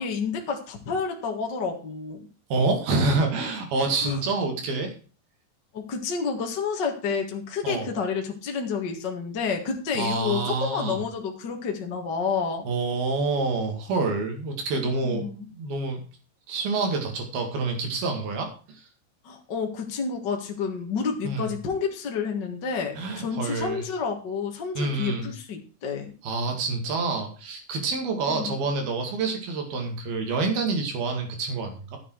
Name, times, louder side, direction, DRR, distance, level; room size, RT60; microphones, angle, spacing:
voice 1, 0.0-2.2 4.0-4.2 5.7-12.7 15.0-15.5 19.2-26.1 28.3-28.5, left 5 dB, 40° left, 2 dB, 1.6 m, -29 dB
voice 2, 2.5-4.9 7.6-7.9 9.9-11.0 12.7-16.0 16.5-18.9 21.2-21.5 23.0-23.9 24.8-25.3 26.2-32.0, right 3 dB, 70° right, 4 dB, 4.0 m, -27 dB
13.5 x 8.7 x 4.7 m, 0.37 s
omnidirectional pair, 4.5 m